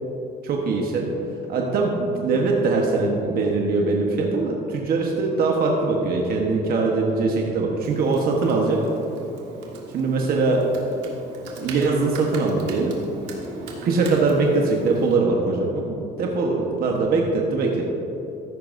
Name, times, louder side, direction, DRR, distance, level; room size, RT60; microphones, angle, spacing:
voice 1, 0.4-1.1 1.5-8.8 9.9-10.6 11.6-13.0 13.8-17.8, right 3 dB, 60° right, 0 dB, 1.2 m, -22 dB
Computer keyboard, 7.8-15.2, right 2 dB, 90° right, 1.7 m, -39 dB
14.0 x 10.5 x 2.7 m, 3.0 s
cardioid pair, 110°, 17 cm